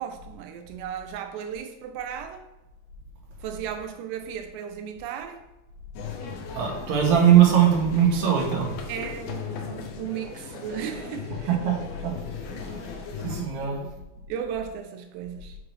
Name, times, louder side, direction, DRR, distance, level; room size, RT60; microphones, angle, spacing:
voice 1, 0.0-2.4 3.4-5.4 8.9-11.6 13.6-15.6, right 9 dB, 85° right, 6 dB, 2.8 m, -35 dB
sound 1, 5.9-13.4, left 5 dB, 75° left, 2.1 m, -37 dB
voice 2, 6.5-8.7 11.7-11.8 12.0-12.1 13.2-13.8, right 9 dB, 65° right, -1 dB, 1.9 m, -20 dB
6.4 x 4.7 x 3.2 m, 0.99 s
omnidirectional pair, 4.9 m